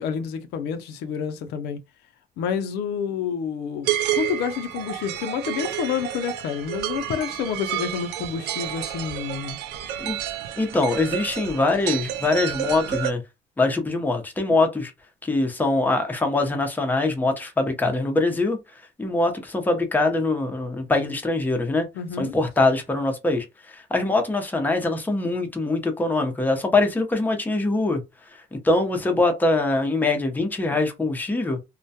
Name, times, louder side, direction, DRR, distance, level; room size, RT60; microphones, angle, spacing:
voice 1, 0.0-1.8 2.4-9.6 21.9-22.3, left 7 dB, 80° left, 0.5 m, -29 dB
sound 1, 3.9-13.1, right 11 dB, 75° right, 0.4 m, -30 dB
voice 2, 10.6-13.2 13.6-14.9 15.2-18.6 19.0-21.9 22.2-28.0 28.5-31.6, left 2 dB, 10° left, 0.6 m, -23 dB
2.2 x 2.2 x 2.7 m
cardioid pair, 110°, 17 cm